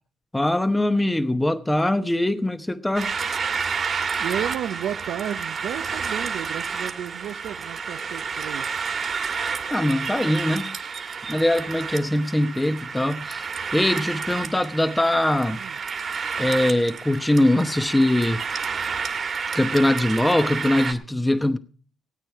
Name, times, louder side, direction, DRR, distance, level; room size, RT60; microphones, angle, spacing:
voice 1, 0.3-3.1 9.7-10.8 11.3-13.5 13.7-15.6 16.4-18.4 19.5-21.6, left 1 dB, 10° left, 0.9 m, -22 dB
sound 1, 2.9-20.9, right 5 dB, 45° right, 1.6 m, -30 dB
voice 2, 4.2-8.7 15.6-15.8, right 10 dB, 80° right, 0.6 m, -32 dB
17.0 x 9.0 x 4.6 m
cardioid pair, 90°, 0 cm